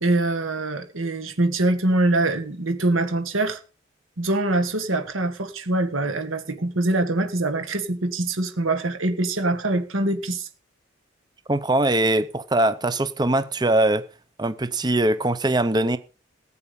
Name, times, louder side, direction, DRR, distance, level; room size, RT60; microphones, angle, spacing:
voice 1, 0.0-3.6 4.2-10.5, right 2 dB, 85° right, 1.7 m, -24 dB
voice 2, 11.5-14.0 14.4-16.0, right 1 dB, 20° right, 0.6 m, -21 dB
15.5 x 8.4 x 5.3 m
head